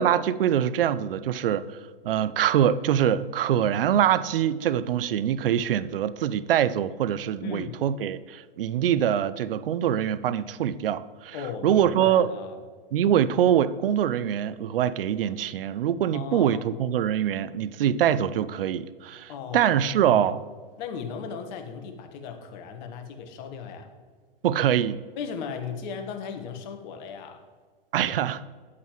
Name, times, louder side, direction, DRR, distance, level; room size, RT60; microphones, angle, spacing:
voice 1, 0.0-1.7 2.0-11.4 11.6-12.3 12.9-20.4 24.4-25.0 27.9-28.4, right 10 dB, 75° right, 16 dB, 0.5 m, -24 dB
voice 2, 7.4-7.8 11.3-12.6 16.1-16.6 19.3-20.3 20.8-23.9 25.1-27.4, left 6 dB, 50° left, 6 dB, 1.3 m, -37 dB
9.1 x 8.4 x 3.0 m, 1.5 s
hypercardioid pair, 115°, 29 cm